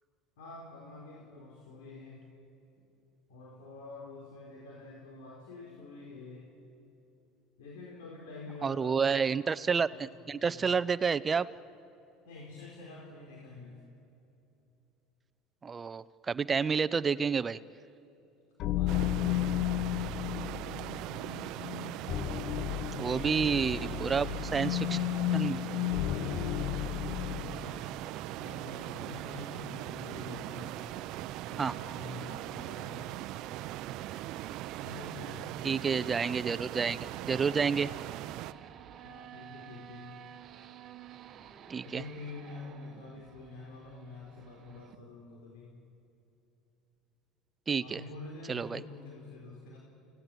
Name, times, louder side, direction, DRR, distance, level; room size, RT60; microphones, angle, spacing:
voice 1, 0.4-2.3 3.3-6.5 7.6-9.4 9.8-10.7 12.2-13.8 18.8-20.1 22.9-27.9 28.4-30.7 31.5-33.1 34.8-35.5 39.0-40.2 41.8-45.8 47.8-49.8, left 3 dB, 85° left, -2 dB, 4.6 m, -46 dB
voice 2, 8.6-11.5 15.6-17.6 23.0-24.3 24.5-25.0 25.3-25.6 31.6-31.7 35.6-37.9 41.7-42.0 47.7-48.0 48.5-48.8, right 5 dB, 25° right, 15 dB, 0.7 m, -29 dB
sound 1, 18.6-27.8, left 15 dB, 50° left, 0.6 m, -33 dB
sound 2, 18.9-38.5, right 15 dB, 65° right, 0.7 m, -40 dB
sound 3, 26.6-44.9, right 9 dB, 45° right, 1.4 m, -52 dB
30.0 x 17.5 x 9.3 m, 2.9 s
supercardioid pair, 105°, 0 cm